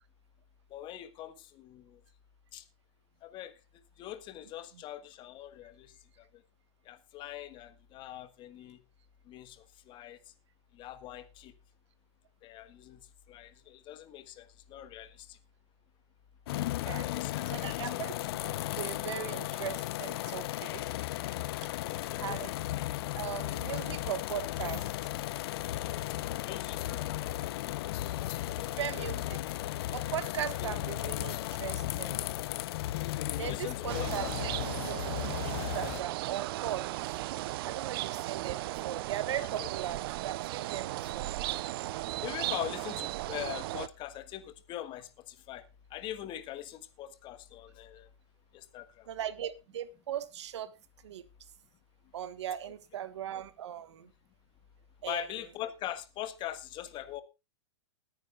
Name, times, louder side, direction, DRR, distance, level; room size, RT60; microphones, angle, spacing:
voice 1, 0.7-2.0 2.5-2.7 3.2-3.5 4.0-6.4 6.9-8.8 9.3-10.2 10.7-11.5 12.4-15.4 16.8-17.7 21.9-22.4 26.2-27.1 27.5-27.6 28.4-29.1 33.4-34.3 39.4-39.7 42.2-48.1 48.5-49.1 52.6-52.7 55.1-57.2, left 12 dB, 30° left, 1.6 m, -43 dB
sound 1, 16.5-36.0, left 15 dB, 55° left, 0.7 m, -35 dB
voice 2, 17.5-18.1 18.4-20.8 22.2-22.5 23.2-24.8 28.8-29.4 29.9-32.3 33.4-34.5 34.8-35.1 35.4-36.9 37.6-41.3 49.1-50.7 51.0-51.2 52.1-54.1 55.0-55.3, right 10 dB, 70° right, 1.5 m, -38 dB
sound 2, 33.9-43.9, right 17 dB, 55° right, 0.6 m, -36 dB
20.5 x 9.6 x 2.4 m
hypercardioid pair, 125°, 15 cm